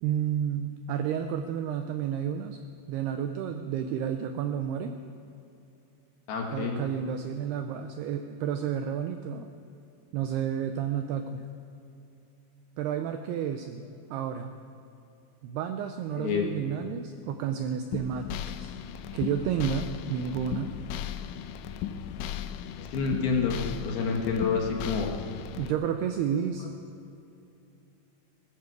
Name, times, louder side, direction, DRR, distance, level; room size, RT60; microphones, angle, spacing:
voice 1, 0.0-2.6 2.9-5.0 6.5-9.5 10.1-11.4 12.8-14.5 15.4-18.7 19.1-20.7 25.6-26.7, right 8 dB, 85° right, 7 dB, 2.3 m, -31 dB
voice 2, 6.3-6.8 16.2-16.5 22.8-23.6 23.9-25.1, left 5 dB, 65° left, 1 dB, 3.0 m, -28 dB
sound 1, 17.9-25.7, left 9 dB, 90° left, 3.0 m, -36 dB
20.0 x 14.0 x 4.7 m, 2.7 s
omnidirectional pair, 5.3 m